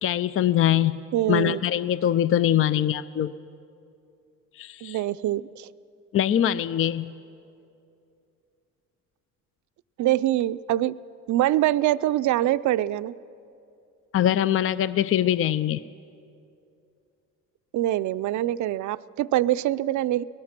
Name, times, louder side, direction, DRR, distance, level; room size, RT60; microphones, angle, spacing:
voice 1, 0.0-1.0 1.3-3.3 4.6-5.0 6.1-7.1 14.1-15.8, left 11 dB, 45° left, 16 dB, 0.5 m, -23 dB
voice 2, 1.1-1.6 4.8-5.7 10.0-11.0 11.3-13.1 17.7-20.2, right 14 dB, 70° right, 15 dB, 0.5 m, -24 dB
23.5 x 19.0 x 5.9 m, 2.6 s
cardioid pair, 90°, 30 cm